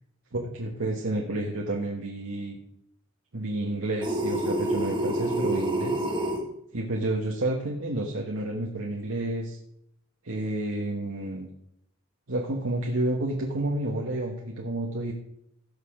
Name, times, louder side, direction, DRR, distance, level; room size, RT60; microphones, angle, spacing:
voice 1, 0.3-2.6 3.3-6.0 6.7-9.6 10.2-11.5 12.3-15.1, right 1 dB, 80° right, -1 dB, 1.3 m, -30 dB
sound 1, 4.0-6.4, right 1 dB, 25° right, 2.0 m, -27 dB
16.5 x 6.7 x 3.7 m, 0.77 s
head